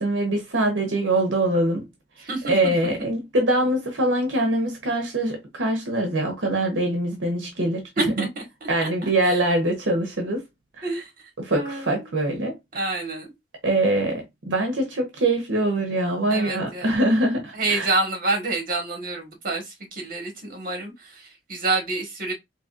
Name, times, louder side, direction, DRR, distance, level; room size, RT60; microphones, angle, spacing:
voice 1, 0.0-1.9 2.2-7.8 8.2-8.3 8.7-10.4 10.8-10.9 11.4-12.6 13.6-17.9, right 1 dB, 85° right, 0.9 m, -23 dB
voice 2, 2.2-2.5 2.8-2.9 8.0-9.4 10.8-11.1 11.5-12.1 12.7-13.3 16.3-16.9 17.5-22.3, right 2 dB, 50° right, 1.6 m, -28 dB
4.1 x 2.9 x 2.5 m
head